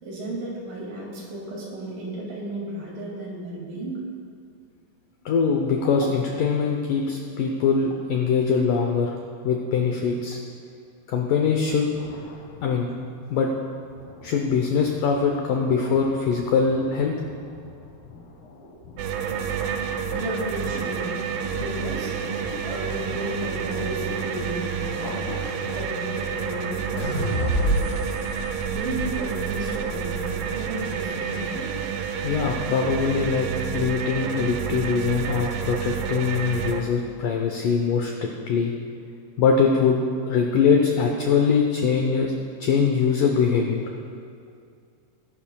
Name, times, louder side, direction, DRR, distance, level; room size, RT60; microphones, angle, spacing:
voice 1, 0.0-4.0 20.1-21.2 21.6-22.1 22.6-25.1 25.7-28.0 28.7-31.8, right 1 dB, 55° right, -3 dB, 3.8 m, -34 dB
voice 2, 5.3-9.2 9.4-10.4 11.1-11.9 12.6-12.9 13.3-13.5 14.2-17.1 32.2-33.5 33.7-38.7 39.4-40.0 40.3-42.3 42.6-43.8, left 5 dB, 90° left, 2 dB, 1.8 m, -22 dB
sound 1, 11.7-13.2 13.7-25.8, left 2 dB, 70° left, 3.2 m, -43 dB
sound 2, 19.0-36.8, right 7 dB, 75° right, 2.2 m, -29 dB
sound 3, 27.0-30.2, equal, 45° left, 0.9 m, -28 dB
20.5 x 11.5 x 2.3 m, 2.3 s
omnidirectional pair, 4.9 m